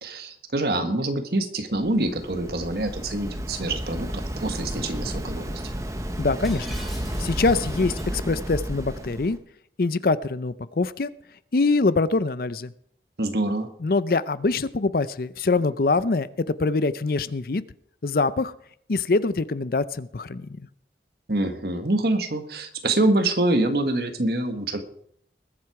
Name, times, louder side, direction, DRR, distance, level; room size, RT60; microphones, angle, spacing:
voice 1, 0.0-5.5 13.2-13.7 21.3-24.8, right 2 dB, 60° right, 8 dB, 1.5 m, -25 dB
Waves surf, 1.7-9.4, equal, 15° right, 1.1 m, -32 dB
voice 2, 6.2-6.7 7.2-9.4 9.8-11.1 11.5-12.7 13.8-17.6 18.0-18.5 18.9-20.5, left 3 dB, 55° left, 16 dB, 0.5 m, -24 dB
Shatter, 6.4-8.2, equal, ahead, 3.1 m, -43 dB
20.5 x 7.7 x 4.8 m, 0.65 s
head